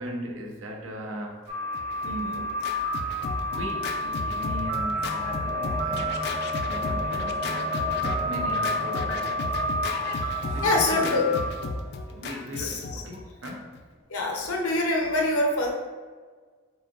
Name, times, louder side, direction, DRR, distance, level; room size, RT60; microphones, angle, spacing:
voice 1, 0.0-1.4 3.5-6.3 6.6-9.8 10.1-11.4 12.1-13.7, equal, 70° right, 1 dB, 0.7 m, -38 dB
sound 1, 1.5-11.5, equal, 30° right, 0.9 m, -30 dB
Scratching (performance technique), 1.7-13.8, left 3 dB, 50° left, 0.3 m, -34 dB
voice 2, 2.0-2.5 10.1-11.3 12.6-13.0 14.1-15.7, left 2 dB, 85° left, 0 dB, 0.8 m, -26 dB
sound 2, 2.7-12.9, left 1 dB, 5° right, 0.6 m, -38 dB
4.9 x 3.7 x 2.4 m, 1.5 s
head